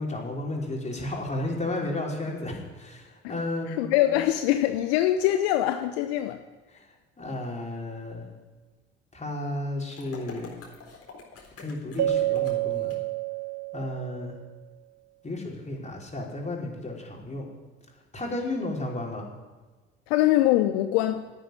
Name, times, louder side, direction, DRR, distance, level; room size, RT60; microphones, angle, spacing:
voice 1, 0.0-3.8 6.7-6.9 7.2-8.3 9.1-10.5 11.6-13.0 13.7-14.4 15.2-17.5 18.1-19.3, left 2 dB, 20° left, -1 dB, 5.0 m, -33 dB
voice 2, 3.7-6.4 20.1-21.3, left 13 dB, 70° left, 8 dB, 0.8 m, -23 dB
sound 1, 9.9-12.9, left 5 dB, 45° left, 4.0 m, -45 dB
Keyboard (musical), 12.0-14.4, right 13 dB, 55° right, 1.7 m, -28 dB
11.0 x 9.1 x 9.9 m, 1.3 s
figure-of-eight pair, 55°, 33 cm